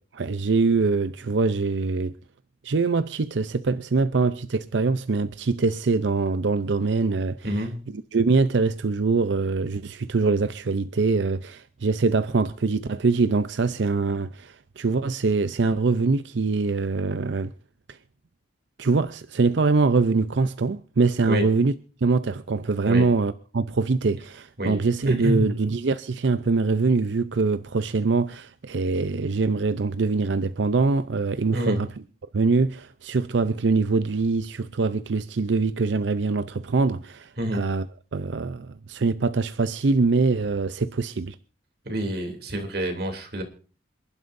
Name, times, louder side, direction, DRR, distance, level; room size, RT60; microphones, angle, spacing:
voice 1, 0.0-2.1 2.6-7.6 7.9-17.5 17.9-18.0 18.8-21.7 22.0-31.9 32.3-37.9 38.1-41.4, right 4 dB, 75° right, 0.6 m, -23 dB
voice 2, 25.1-25.4 31.5-31.8 37.4-37.6 41.8-43.4, equal, 55° right, 3.0 m, -27 dB
27.5 x 11.5 x 2.6 m
head